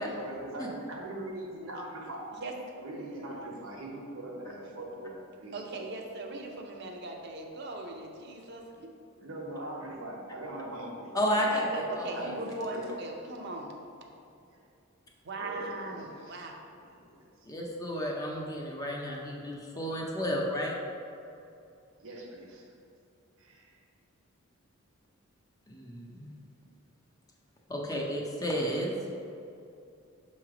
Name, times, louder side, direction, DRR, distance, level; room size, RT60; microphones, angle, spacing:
voice 1, 0.0-2.3 2.8-5.6 9.2-11.5 11.8-12.9 13.3-13.4 15.4-16.4 16.7-17.5 22.0-22.7 23.4-23.8, right 1 dB, 75° right, -1 dB, 1.1 m, -41 dB
voice 2, 2.3-2.8 5.5-8.9 11.4-13.7 15.2-16.5, right 2 dB, 50° right, 2 dB, 0.6 m, -39 dB
voice 3, 11.1-12.3 17.4-20.7 25.7-26.3 27.7-28.9, equal, 15° left, -2 dB, 0.6 m, -32 dB
6.5 x 3.1 x 4.9 m, 2.6 s
head